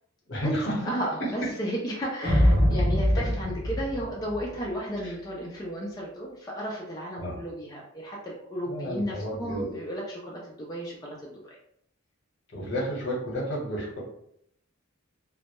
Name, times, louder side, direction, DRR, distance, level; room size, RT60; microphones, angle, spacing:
voice 1, 0.3-0.9 1.2-1.5 5.0-5.1 7.2-7.4 8.7-9.7 12.5-14.0, equal, 60° left, -2 dB, 0.8 m, -31 dB
voice 2, 0.8-11.6, equal, 20° left, -4 dB, 0.3 m, -34 dB
sound 1, 2.2-4.7, equal, 60° right, 0.8 m, -23 dB
2.1 x 2.0 x 2.9 m, 0.71 s
head